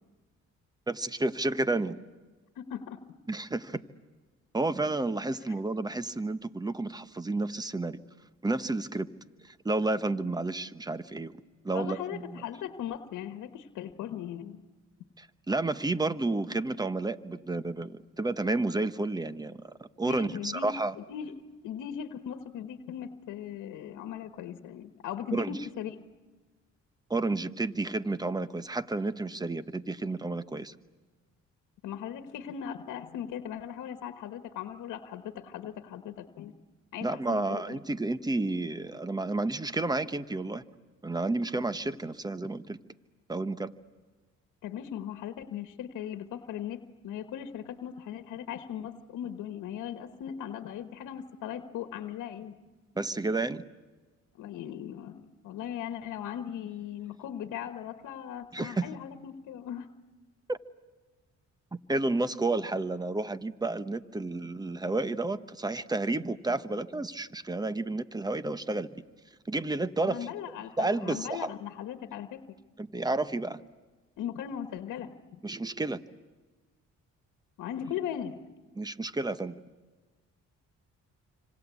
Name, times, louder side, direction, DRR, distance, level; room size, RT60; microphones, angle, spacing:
voice 1, 0.9-2.0 3.3-3.8 4.5-8.0 8.4-9.1 9.4-11.4 11.6-12.4 15.2-19.6 20.0-20.9 25.3-25.6 27.1-30.7 37.0-40.6 41.0-42.8 43.3-43.7 53.0-53.6 58.5-58.9 60.5-60.6 61.7-68.9 69.5-70.3 70.8-71.5 72.8-73.6 75.4-76.0 78.8-79.6, right 2 dB, 15° right, 13 dB, 1.1 m, -31 dB
voice 2, 2.5-3.0 11.7-14.6 20.1-21.3 21.6-26.0 31.8-36.5 36.9-37.8 44.6-52.6 54.4-59.9 70.0-72.4 74.2-75.4 77.6-78.4, left 9 dB, 85° left, 8 dB, 1.4 m, -38 dB
27.0 x 26.0 x 8.3 m, 1.3 s
cardioid pair, 90°, 30 cm